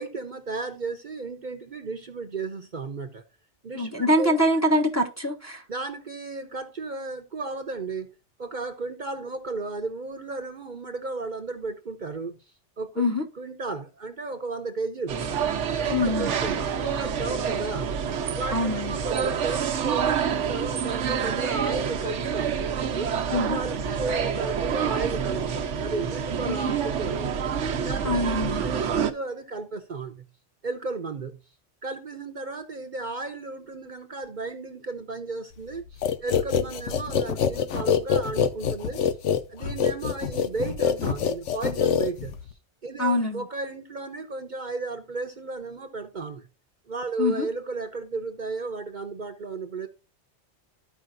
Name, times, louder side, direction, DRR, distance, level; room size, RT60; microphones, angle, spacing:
voice 1, 0.0-3.2 3.6-4.3 5.7-8.1 8.4-12.4 12.8-15.2 15.8-18.0 18.3-22.5 22.9-27.3 27.8-30.2 30.6-31.4 31.8-39.0 39.5-42.3 42.8-46.5 46.9-49.9, right 3 dB, 45° right, 0.9 m, -34 dB
voice 2, 3.7-5.6 13.0-13.2 15.9-16.3 18.5-19.0 23.3-23.6 28.0-28.7 43.0-43.4 47.2-47.5, left 1 dB, 15° left, 0.9 m, -24 dB
sound 1, 15.1-29.1, right 7 dB, 80° right, 1.1 m, -27 dB
sound 2, 36.0-42.5, left 7 dB, 85° left, 1.1 m, -25 dB
13.5 x 5.0 x 2.5 m
omnidirectional pair, 1.2 m